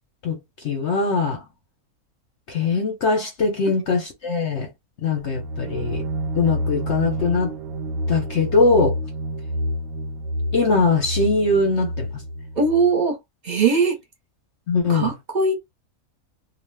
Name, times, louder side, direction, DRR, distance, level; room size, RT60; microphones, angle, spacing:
voice 1, 0.6-1.4 2.5-4.7 5.0-6.0 6.3-7.5 8.1-9.0 10.5-12.2 14.7-15.1, left 3 dB, 60° left, 0.8 m, -21 dB
sound 1, 5.2-12.9, equal, 65° right, 0.8 m, -28 dB
voice 2, 12.6-13.2 13.4-14.0 14.9-15.5, right 4 dB, 35° right, 0.9 m, -20 dB
2.4 x 2.3 x 3.3 m
omnidirectional pair, 1.6 m